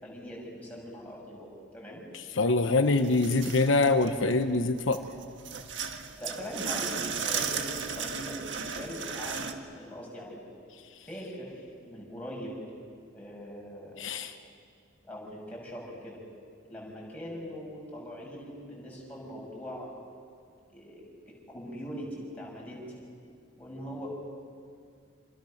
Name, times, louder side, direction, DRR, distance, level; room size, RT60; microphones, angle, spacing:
voice 1, 0.0-1.5 1.7-2.0 6.2-10.4 11.0-12.6 13.1-14.0 15.0-16.2 16.7-20.0 20.7-23.0 23.6-24.1, equal, 5° left, -4 dB, 6.9 m, -41 dB
voice 2, 2.1-5.0 14.0-14.3, left 3 dB, 80° left, 7 dB, 1.1 m, -25 dB
sound 1, 3.0-4.4 4.8-9.5, right 6 dB, 65° right, 1.6 m, -35 dB
28.5 x 27.5 x 6.6 m, 2.2 s
head